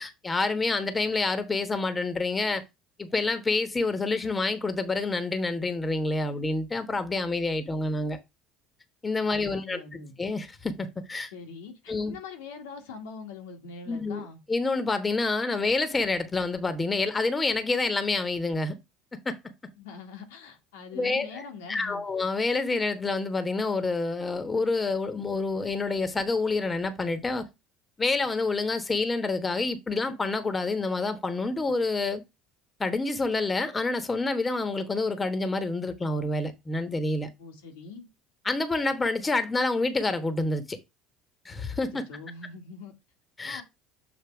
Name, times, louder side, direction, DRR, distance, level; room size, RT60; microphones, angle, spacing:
voice 1, 0.0-2.6 3.0-8.2 9.0-9.8 10.2-11.3 11.9-12.2 13.9-18.8 19.1-19.4 20.9-27.5 28.0-32.2 32.8-37.3 38.4-40.8 41.4-42.0 43.4-43.6, left 3 dB, 20° left, 1.1 m, -28 dB
voice 2, 9.2-10.2 11.3-14.4 19.7-22.0 37.4-38.1 42.1-42.9 43.4-43.6, left 5 dB, 90° left, 1.5 m, -43 dB
6.9 x 2.8 x 5.8 m
supercardioid pair, 90°, 0 cm